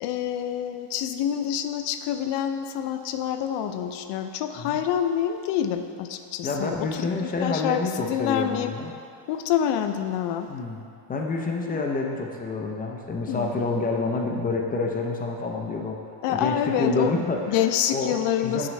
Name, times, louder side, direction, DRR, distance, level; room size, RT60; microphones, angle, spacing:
voice 1, 0.0-8.7 9.3-10.5 11.6-11.9 13.3-13.5 16.2-17.1 17.5-18.7, left 10 dB, 70° left, 8 dB, 0.6 m, -27 dB
voice 2, 6.4-8.9 10.5-10.8 11.1-16.0 16.3-18.1 18.4-18.7, left 3 dB, 20° left, 0 dB, 0.5 m, -28 dB
8.3 x 6.1 x 3.1 m, 2.5 s
cardioid pair, 155°, 43 cm